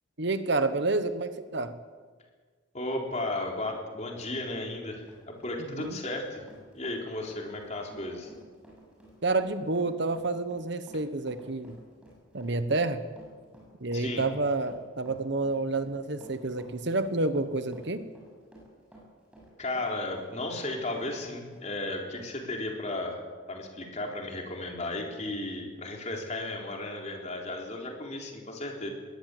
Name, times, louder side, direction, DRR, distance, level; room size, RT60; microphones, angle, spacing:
voice 1, 0.2-1.8 5.7-6.0 9.2-11.8 12.3-13.1 13.8-18.1, right 3 dB, 55° right, 11 dB, 1.2 m, -29 dB
voice 2, 2.7-6.4 6.7-8.3 13.9-14.2 19.6-23.2 23.5-28.9, left 2 dB, 35° left, 1 dB, 4.0 m, -34 dB
Run, 4.7-21.2 21.5-21.6 22.2-22.3, right 1 dB, 5° right, 7.0 m, -53 dB
22.0 x 18.0 x 8.0 m, 1.5 s
head